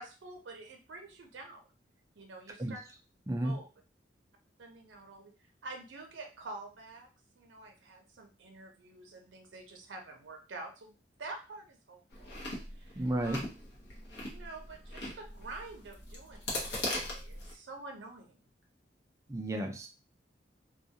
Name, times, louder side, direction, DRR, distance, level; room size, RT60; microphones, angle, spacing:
voice 1, 0.0-1.7 2.2-2.8 3.4-3.7 4.6-7.1 7.4-13.4 14.3-18.4, right 2 dB, 85° right, 4 dB, 0.5 m, -48 dB
Chewing mastication, 12.1-17.5, left 1 dB, 70° left, 0.8 m, -40 dB
voice 2, 13.0-13.4 19.3-19.9, right 1 dB, 15° right, 3 dB, 0.3 m, -32 dB
2.2 x 2.2 x 2.7 m, 0.32 s
head